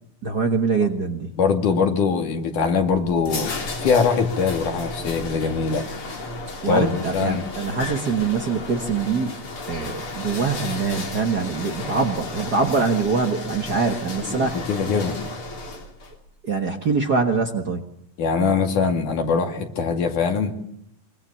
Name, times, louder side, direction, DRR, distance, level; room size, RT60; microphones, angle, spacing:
voice 1, 0.2-1.4 6.6-9.4 9.7-14.6 16.4-17.9, right 4 dB, 40° right, 5 dB, 1.5 m, -24 dB
voice 2, 1.4-5.9 6.7-7.5 11.5-12.0 14.2-15.2 18.2-20.5, left 5 dB, 85° left, 4 dB, 4.0 m, -22 dB
sound 1, 2.8-16.2, left 2 dB, 45° left, 3.7 m, -33 dB
24.0 x 24.0 x 7.0 m, 0.73 s
omnidirectional pair, 3.5 m